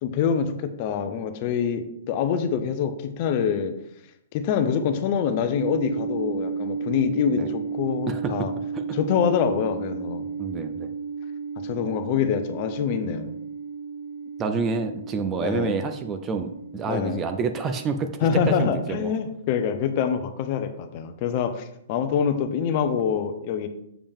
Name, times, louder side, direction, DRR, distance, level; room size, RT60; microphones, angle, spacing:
voice 1, 0.0-3.7 4.3-8.5 8.9-10.2 11.6-13.3 15.4-15.7 16.9-17.2 18.2-23.7, left 7 dB, 40° left, 9 dB, 0.7 m, -25 dB
sound 1, 5.6-19.1, right 5 dB, 75° right, 0.7 m, -33 dB
voice 2, 10.4-10.9 14.4-18.1 18.5-19.1, right 5 dB, 20° right, 8 dB, 0.4 m, -28 dB
7.2 x 5.1 x 3.6 m, 0.78 s
hypercardioid pair, 155°, 0 cm